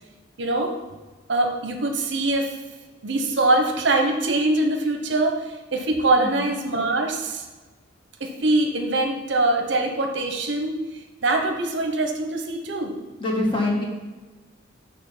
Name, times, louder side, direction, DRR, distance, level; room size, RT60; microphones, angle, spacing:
voice 1, 0.4-0.7 1.3-2.5 3.0-7.4 8.2-10.8 11.2-12.9, right 2 dB, 60° right, 3 dB, 0.8 m, -23 dB
voice 2, 13.2-13.8, left 2 dB, 25° left, -2 dB, 1.3 m, -24 dB
6.7 x 3.1 x 5.7 m, 1.2 s
head